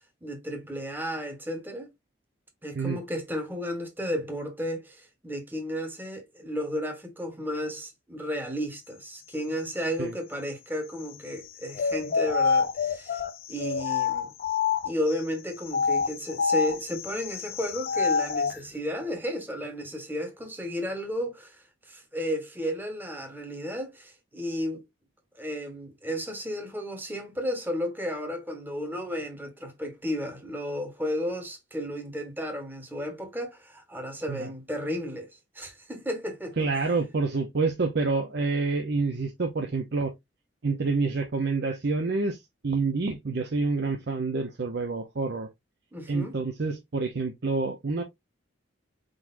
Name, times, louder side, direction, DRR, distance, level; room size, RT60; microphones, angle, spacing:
voice 1, 0.2-1.9 2.6-13.2 13.5-14.3 14.8-24.8 25.3-35.3 35.5-36.6 45.9-46.3, equal, 10° right, 1.1 m, -33 dB
sound 1, 11.7-15.1 15.7-18.6, left 6 dB, 50° left, 0.4 m, -27 dB
voice 2, 36.6-40.1 40.6-45.5 46.1-48.0, right 3 dB, 55° right, 0.7 m, -28 dB
4.7 x 3.9 x 2.5 m
head